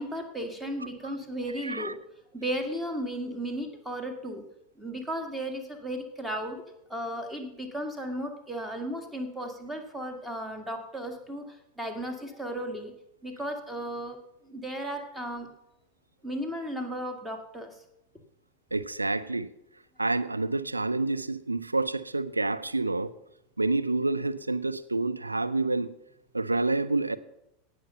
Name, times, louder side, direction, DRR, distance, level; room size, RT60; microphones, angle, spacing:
voice 1, 0.0-2.0 2.3-4.4 4.8-6.6 6.9-11.4 11.8-12.9 13.2-14.2 14.4-15.5 16.2-17.7, equal, 5° right, 2.1 m, -35 dB
voice 2, 1.6-1.9 18.7-19.5 20.0-23.1 23.6-25.9 26.3-27.2, right 2 dB, 85° right, 0.5 m, -28 dB
17.0 x 6.5 x 5.6 m
figure-of-eight pair, 85°, 0 cm